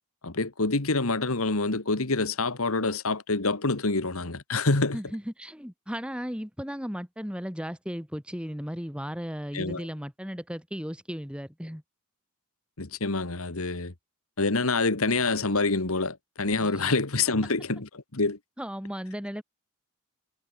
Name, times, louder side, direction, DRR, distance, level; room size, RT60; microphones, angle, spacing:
voice 1, 0.2-5.0 9.5-9.9 12.8-13.9 14.4-18.4, left 3 dB, 75° left, 1.8 m, -26 dB
voice 2, 4.9-11.8 16.6-16.7 18.6-19.4, equal, 5° right, 3.0 m, -35 dB
head